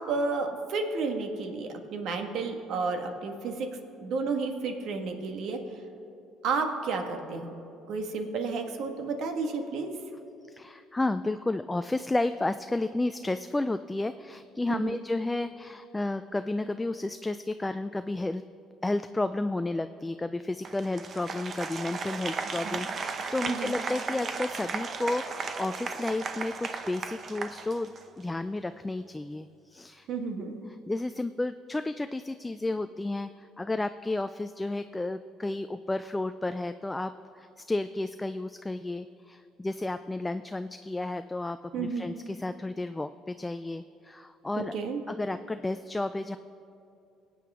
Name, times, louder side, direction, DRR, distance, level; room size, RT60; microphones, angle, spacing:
voice 1, 0.0-3.7 4.0-5.6 6.4-7.5 7.9-9.9 14.7-15.0 22.6-22.8 23.4-23.7 30.1-30.6 41.7-42.0 44.6-45.0, right 4 dB, 65° right, 5 dB, 1.5 m, -31 dB
voice 2, 10.5-18.4 18.8-30.1 30.7-44.7 45.1-46.4, left 2 dB, 10° left, 10 dB, 0.3 m, -32 dB
Applause, 20.6-28.2, right 4 dB, 40° right, 0.8 m, -35 dB
23.0 x 8.6 x 3.6 m, 2.6 s
cardioid pair, 110°, 0 cm